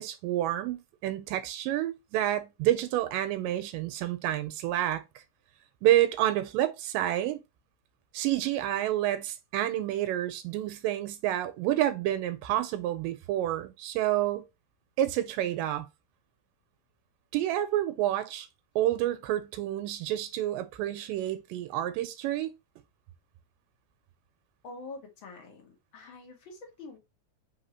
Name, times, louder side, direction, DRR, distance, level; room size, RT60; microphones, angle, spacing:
voice 1, 0.0-5.0 5.8-7.4 8.1-14.4 15.0-15.9 17.3-18.5 18.8-22.5, right 13 dB, 85° right, 2.3 m, -29 dB
voice 2, 24.6-27.0, left 3 dB, 50° left, 1.5 m, -46 dB
4.8 x 3.7 x 2.8 m
omnidirectional pair, 3.9 m